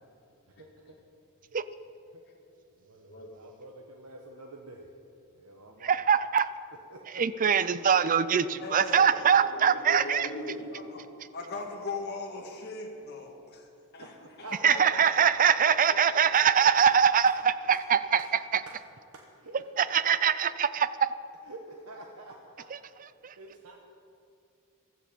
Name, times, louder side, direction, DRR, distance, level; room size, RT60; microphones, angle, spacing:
voice 1, 2.8-4.9 5.3-6.1 6.9-7.2 8.9-11.2 14.0-16.7 18.7-18.8 19.4-20.5 21.4-22.7 23.4-23.8, right 2 dB, 90° right, 1 dB, 1.1 m, -46 dB
voice 2, 5.8-6.5 7.1-10.3 14.6-18.2 19.8-20.9, right 7 dB, 40° right, 15 dB, 0.5 m, -23 dB
voice 3, 8.6-11.0 11.3-15.5 15.9-16.3 16.6-16.7, left 3 dB, 50° left, -1 dB, 1.9 m, -40 dB
15.5 x 13.5 x 5.3 m, 2.5 s
head